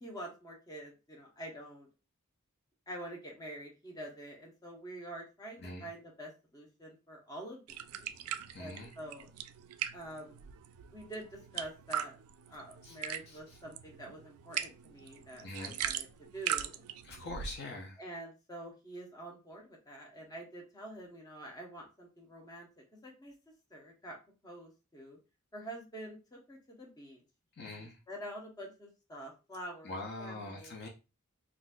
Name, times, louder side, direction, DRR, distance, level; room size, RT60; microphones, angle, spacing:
voice 1, 0.0-1.9 2.9-8.3 8.6-9.3 9.9-10.4 10.9-12.2 12.5-16.1 16.3-16.8 18.0-23.3 23.7-24.2 24.4-25.2 25.5-27.2 27.6-30.8, right 1 dB, 15° left, -1 dB, 0.8 m, -47 dB
voice 2, 5.6-5.9 8.5-8.9 12.8-13.0 13.3-13.6 15.4-15.8 17.0-18.0 27.6-28.0 29.8-30.9, left 2 dB, 50° left, 0 dB, 0.6 m, -43 dB
Dribbling water Edited, 7.7-17.6, right 10 dB, 80° right, 0.3 m, -41 dB
3.9 x 2.5 x 2.2 m, 0.30 s
head